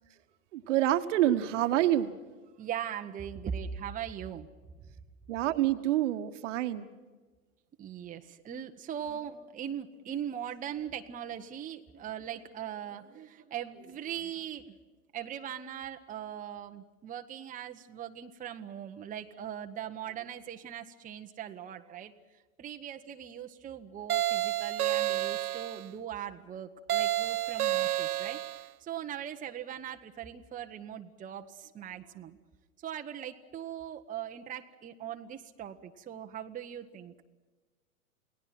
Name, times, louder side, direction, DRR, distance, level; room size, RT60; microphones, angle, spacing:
voice 1, 0.5-2.1 5.3-6.9, right 13 dB, 55° right, 10 dB, 1.5 m, -27 dB
voice 2, 2.6-4.5 7.8-14.8 15.1-22.1 22.6-32.4 32.8-37.1, right 9 dB, 20° right, 4 dB, 1.2 m, -40 dB
sound 1, 24.1-25.9 26.9-28.7, right 13 dB, 80° right, 0.6 m, -30 dB
29.5 x 19.0 x 6.0 m, 1.3 s
figure-of-eight pair, 100°, 44 cm